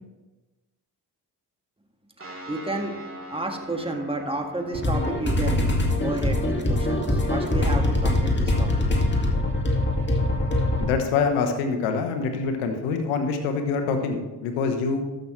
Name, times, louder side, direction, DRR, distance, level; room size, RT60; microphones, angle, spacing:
sound 1, 2.2-13.1, equal, 25° right, 2.5 m, -44 dB
voice 1, 2.5-2.9 3.3-8.9, right 2 dB, 10° right, 3 dB, 1.8 m, -31 dB
sound 2, 4.7-10.8, left 1 dB, 25° left, 2.1 m, -23 dB
voice 2, 10.8-15.0, left 5 dB, 90° left, 5 dB, 1.1 m, -25 dB
13.5 x 6.4 x 3.2 m, 1.1 s
hypercardioid pair, 45°, 47 cm